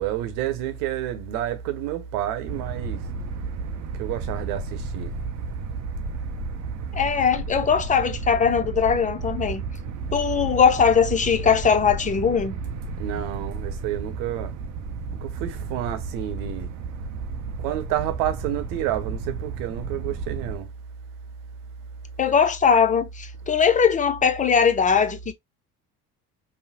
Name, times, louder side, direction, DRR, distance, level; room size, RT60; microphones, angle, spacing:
voice 1, 0.0-3.0 4.0-5.1 13.0-14.5 15.2-16.7 17.6-20.7, right 11 dB, 55° right, 1.1 m, -29 dB
sound 1, 2.5-20.6, right 4 dB, 35° right, 0.7 m, -33 dB
voice 2, 6.9-9.6 10.1-12.6 22.2-25.3, left 6 dB, 15° left, 0.6 m, -20 dB
5.5 x 2.2 x 2.8 m
figure-of-eight pair, 60°, 46 cm